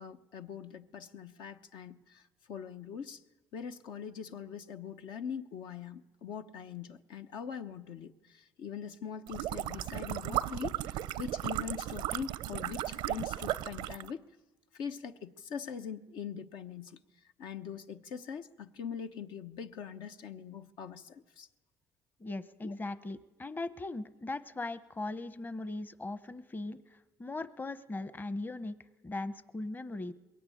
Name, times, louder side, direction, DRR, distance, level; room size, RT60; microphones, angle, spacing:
voice 1, 0.0-3.2 3.5-14.2 14.7-17.0 17.4-21.5 22.6-22.7, left 7 dB, 75° left, 1.0 m, -42 dB
sound 1, 9.3-14.1, right 13 dB, 85° right, 0.6 m, -35 dB
voice 2, 22.2-28.8 29.0-30.1, left 2 dB, 25° left, 0.9 m, -39 dB
21.5 x 16.5 x 9.2 m
supercardioid pair, 85°, 8 cm